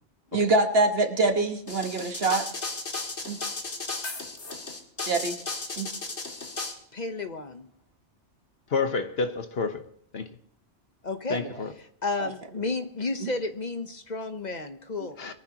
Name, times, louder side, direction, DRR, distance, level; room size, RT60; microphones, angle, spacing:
voice 1, 0.3-2.5 3.2-3.4 5.0-5.4 5.8-5.9 11.3-11.4 12.2-12.3, right 2 dB, 60° right, 1.5 m, -24 dB
sound 1, 1.7-6.7, left 3 dB, 80° left, 2.3 m, -34 dB
voice 2, 6.9-7.7 11.0-11.4 12.0-15.2, left 3 dB, 40° left, 1.0 m, -32 dB
voice 3, 8.7-9.8 10.1-10.3 11.3-11.7 15.2-15.3, left 4 dB, 65° left, 1.3 m, -29 dB
22.5 x 14.5 x 2.9 m
omnidirectional pair, 1.1 m